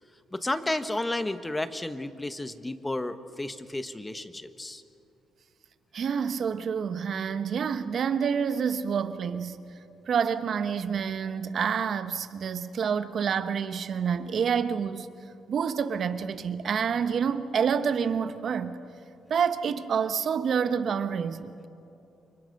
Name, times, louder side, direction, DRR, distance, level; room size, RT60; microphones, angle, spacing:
voice 1, 0.3-4.8, left 2 dB, 15° left, 1.3 m, -32 dB
voice 2, 5.9-9.6 10.1-15.1 15.5-18.8 19.3-21.7, right 7 dB, 55° right, 1.1 m, -28 dB
29.0 x 24.0 x 6.6 m
cardioid pair, 90°, 0 cm